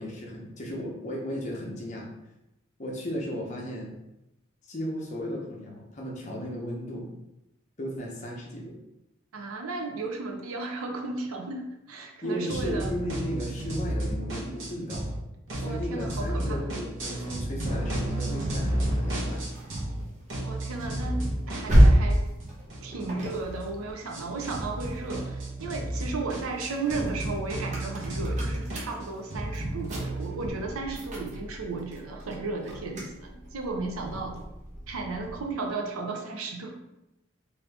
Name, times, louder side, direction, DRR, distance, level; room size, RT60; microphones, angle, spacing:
voice 1, 0.0-2.1 2.8-3.9 4.7-7.1 7.8-8.8 12.2-15.1 15.6-19.4, equal, 35° left, -2 dB, 0.7 m, -35 dB
voice 2, 9.3-12.9 15.6-16.7 20.4-22.3 22.8-34.4 34.9-36.7, right 3 dB, 90° right, 2 dB, 0.6 m, -34 dB
sound 1, 12.5-15.2 15.5-20.0 20.3-30.5, right 1 dB, 60° right, 0.8 m, -33 dB
sound 2, 18.8-25.3 25.8-35.6, equal, 35° right, 0.6 m, -29 dB
2.8 x 2.7 x 3.3 m, 0.90 s
head